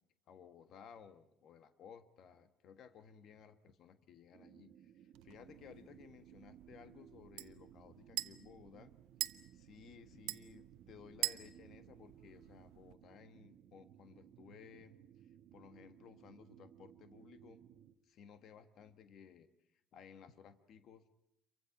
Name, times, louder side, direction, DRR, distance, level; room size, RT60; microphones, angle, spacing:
voice 1, 0.3-8.9 9.5-17.6 18.0-21.1, left 7 dB, 45° left, 10 dB, 1.5 m, -58 dB
sound 1, 4.3-17.9, right 10 dB, 50° right, 1.4 m, -61 dB
sound 2, 5.1-12.9, right 17 dB, 85° right, 1.0 m, -46 dB
29.5 x 24.0 x 6.0 m, 0.81 s
cardioid pair, 175°, 0 cm